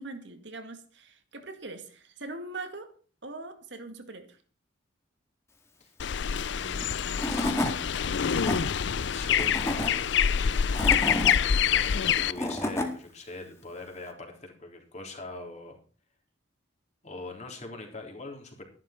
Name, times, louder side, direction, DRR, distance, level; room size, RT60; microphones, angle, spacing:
voice 1, 0.0-2.9 3.2-4.4, right 2 dB, 60° right, 7 dB, 2.0 m, -41 dB
sound 1, 6.0-12.3, left 8 dB, 60° left, 0.5 m, -26 dB
voice 2, 6.5-7.3 9.1-10.1 11.5-15.8 17.0-18.7, left 2 dB, 35° left, 2 dB, 3.6 m, -42 dB
Tools / Wood, 6.8-6.9 7.2-7.7 8.2-8.6 9.3-9.9 10.5-11.3 12.1-12.9, left 1 dB, 15° left, 2.0 m, -29 dB
13.0 x 11.5 x 4.4 m, 0.41 s
head